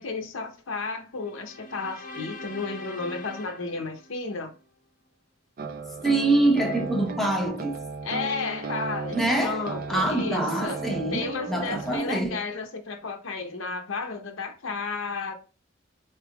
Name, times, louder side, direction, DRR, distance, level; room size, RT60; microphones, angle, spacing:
voice 1, 0.0-4.5 8.0-10.8 11.1-15.3, left 4 dB, 85° left, 0.7 m, -33 dB
sound 1, 1.3-4.6, left 2 dB, 40° left, 0.7 m, -42 dB
sound 2, 5.6-12.0, right 4 dB, 45° right, 0.4 m, -35 dB
voice 2, 6.0-7.8 9.1-9.6 9.9-12.4, right 2 dB, ahead, 0.9 m, -25 dB
4.3 x 3.4 x 2.2 m
head